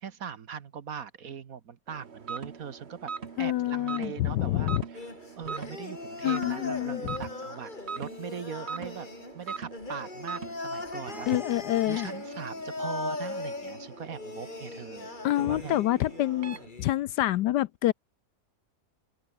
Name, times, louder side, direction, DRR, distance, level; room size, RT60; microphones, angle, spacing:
voice 1, 0.0-3.1 3.4-5.1 5.4-9.1 9.3-11.3 11.9-15.1 15.4-15.9, right 7 dB, 55° right, 1.4 m, -40 dB
sound 1, 1.9-16.7, right 5 dB, 35° right, 1.6 m, -42 dB
voice 2, 3.4-4.8 6.2-7.2 11.3-12.1 15.2-17.9, left 14 dB, 70° left, 1.1 m, -27 dB
sound 2, 4.9-16.9, left 3 dB, 25° left, 2.6 m, -39 dB
open air
omnidirectional pair, 2.0 m